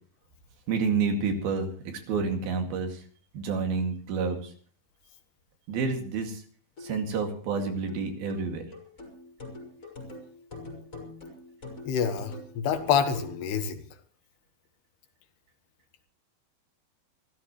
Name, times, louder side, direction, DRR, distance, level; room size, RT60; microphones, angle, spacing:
voice 1, 0.7-1.7 2.1-3.0 3.3-4.5 5.7-6.4 6.8-8.6, right 5 dB, 70° right, 5 dB, 4.1 m, -29 dB
sound 1, 6.8-13.4, left 3 dB, 20° left, 4.9 m, -44 dB
voice 2, 11.9-13.8, left 7 dB, 85° left, 9 dB, 3.5 m, -27 dB
25.5 x 14.0 x 3.1 m, 0.42 s
omnidirectional pair, 4.6 m